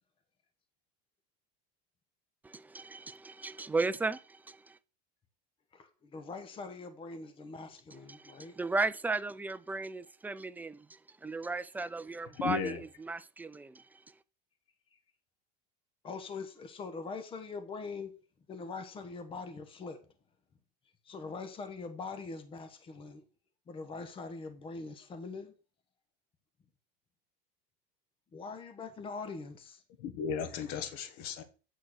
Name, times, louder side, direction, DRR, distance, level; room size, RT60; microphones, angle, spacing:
voice 1, 2.4-4.8 8.1-14.2, right 3 dB, 10° right, 0.4 m, -36 dB
voice 2, 5.7-8.6 14.9-15.0 16.0-18.1 18.5-20.1 21.0-23.2 23.7-25.5 28.3-29.8, left 4 dB, 25° left, 1.3 m, -43 dB
voice 3, 12.3-12.8 30.0-31.4, left 7 dB, 60° left, 1.7 m, -35 dB
8.8 x 4.6 x 6.2 m
supercardioid pair, 135°, 21 cm